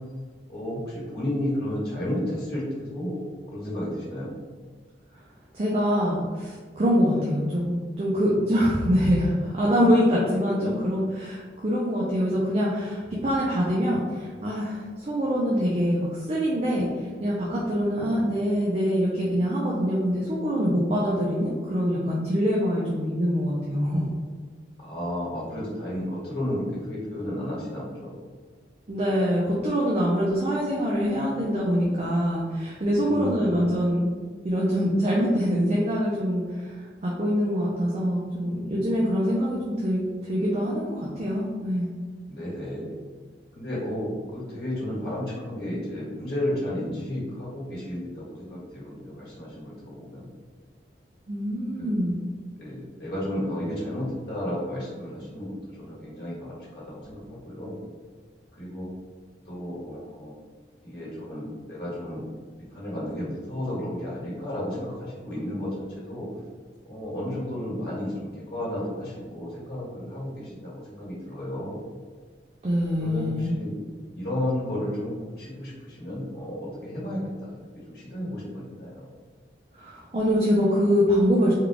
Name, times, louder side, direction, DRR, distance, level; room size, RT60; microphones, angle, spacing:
voice 1, 0.5-3.2 3.5-4.3 7.1-7.3 18.0-18.2 24.8-28.2 33.1-33.7 39.3-39.4 42.3-42.9 43.5-50.3 51.8-52.1 52.6-55.5 55.8-57.8 58.6-58.9 59.4-60.3 60.8-62.2 62.7-66.3 66.8-71.8 73.0-73.7 74.1-79.1, left 1 dB, 60° left, -7 dB, 1.4 m, -33 dB
voice 2, 5.5-16.9 17.2-24.1 28.9-34.1 34.4-36.8 37.0-41.9 51.3-52.2 72.6-73.6 79.7-81.5, equal, 35° right, -5 dB, 0.5 m, -24 dB
3.6 x 2.3 x 3.4 m, 1.5 s
head